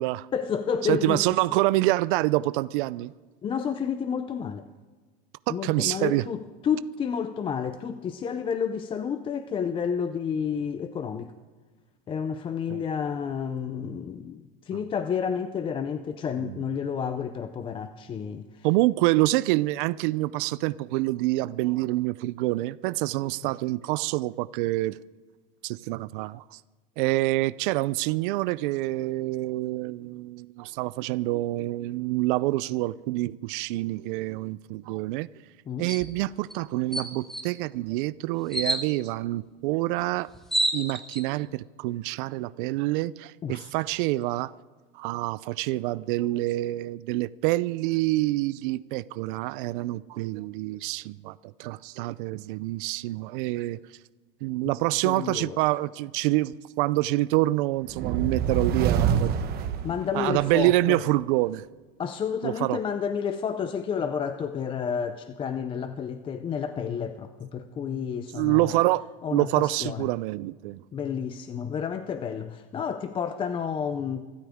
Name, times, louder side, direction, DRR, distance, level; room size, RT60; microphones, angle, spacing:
voice 1, 0.3-1.4 3.4-4.7 5.5-11.3 12.1-18.4 35.7-35.9 43.4-43.7 55.0-55.6 59.8-61.0 62.0-68.8 69.2-70.1 70.9-74.3, left 7 dB, 20° left, 0.5 m, -30 dB
voice 2, 0.8-3.1 5.5-6.3 12.7-12.8 16.4-16.6 18.6-25.0 25.6-26.6 27.0-35.3 35.8-40.3 40.7-44.5 44.9-53.8 54.4-59.3 60.1-61.7 62.4-62.8 68.4-70.8, right 18 dB, 60° right, 0.5 m, -26 dB
sound 1, 35.9-36.1 36.5-36.6 36.9-37.4 38.5-38.8 40.0-40.1 40.3-41.2, right 1 dB, ahead, 1.5 m, -28 dB
sound 2, 57.9-60.6, right 8 dB, 30° right, 1.2 m, -26 dB
25.0 x 13.0 x 3.6 m
supercardioid pair, 145°, 29 cm